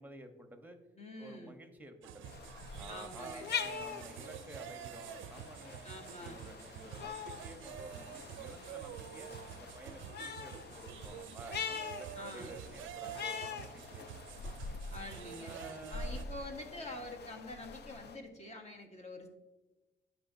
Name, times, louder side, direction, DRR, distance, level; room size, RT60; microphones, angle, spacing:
voice 1, 0.0-0.8 1.2-2.3 2.8-5.8 6.2-14.0 15.4-16.3, right 1 dB, 10° right, 6 dB, 1.0 m, -52 dB
voice 2, 1.0-1.5 2.9-3.5 5.8-6.4 12.1-12.6 14.9-15.5 15.9-19.3, left 1 dB, 35° left, 4 dB, 1.4 m, -46 dB
sound 1, 2.0-16.3, right 10 dB, 75° right, 0.5 m, -48 dB
sound 2, 2.2-18.2, left 6 dB, 55° left, 0.6 m, -44 dB
13.0 x 4.9 x 2.7 m, 1.1 s
cardioid pair, 90°, 20 cm